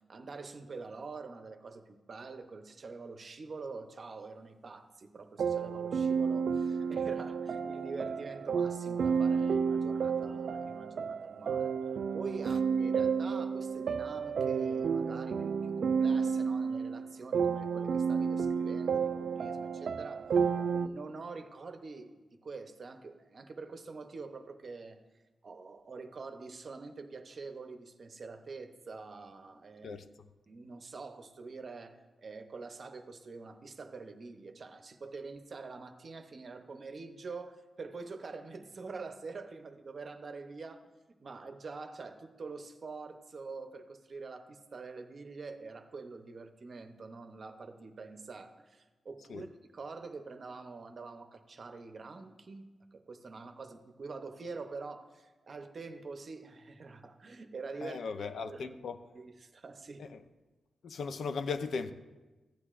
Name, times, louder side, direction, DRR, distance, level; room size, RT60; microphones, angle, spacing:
voice 1, 0.1-11.7 12.1-25.0 25.4-30.0 30.5-40.9 41.2-49.5 49.7-58.0 58.5-58.8 59.1-60.0, right 4 dB, 45° right, 0.7 m, -45 dB
sound 1, 5.4-20.9, right 6 dB, 65° right, 0.3 m, -31 dB
voice 2, 29.8-30.3 49.3-49.5 57.8-59.1 60.0-60.2 60.8-61.9, left 5 dB, 75° left, 0.5 m, -38 dB
15.0 x 10.0 x 2.5 m
wide cardioid pair, 160°, 0 cm